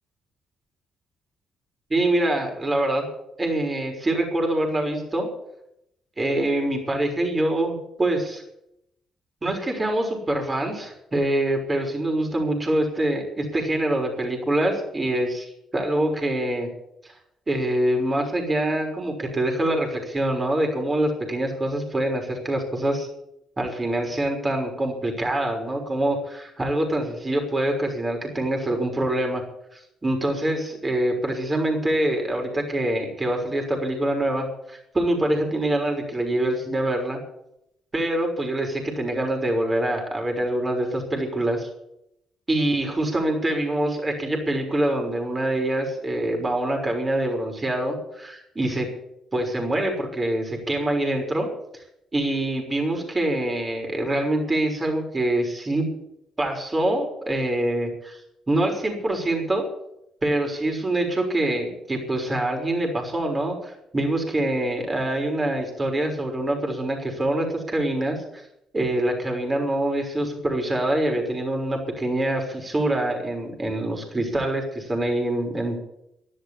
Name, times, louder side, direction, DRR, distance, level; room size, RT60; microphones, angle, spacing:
voice 1, 1.9-3.1 3.4-5.3 6.2-8.4 9.4-16.7 17.5-23.1 23.6-29.4 29.7-37.2 37.9-41.7 42.5-48.9 49.3-51.5 52.1-55.9 56.4-58.2 58.5-59.7 60.2-68.4 68.7-75.8, right 1 dB, 25° right, 2 dB, 6.0 m, -25 dB
12.5 x 12.5 x 8.7 m, 0.78 s
cardioid pair, 90°, 0 cm